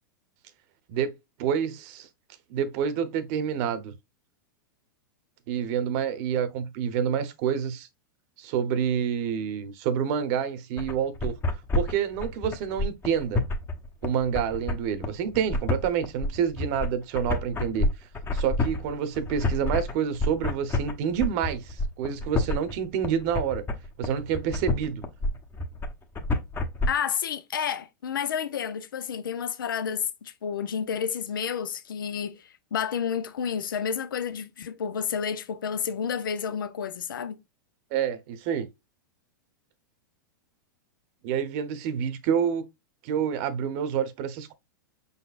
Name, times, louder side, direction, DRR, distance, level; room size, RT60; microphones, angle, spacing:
voice 1, 1.4-2.1 2.5-3.9 5.5-7.9 8.4-11.4 11.7-13.4 14.0-17.9 18.3-23.6 24.0-25.0 37.9-38.7 41.2-42.7 43.0-44.5, right 8 dB, 50° right, 0.8 m, -28 dB
sound 1, 10.8-26.9, left 2 dB, 20° left, 0.9 m, -28 dB
voice 2, 26.9-37.4, left 7 dB, 85° left, 0.6 m, -30 dB
5.1 x 4.1 x 2.4 m
hypercardioid pair, 120°, 11 cm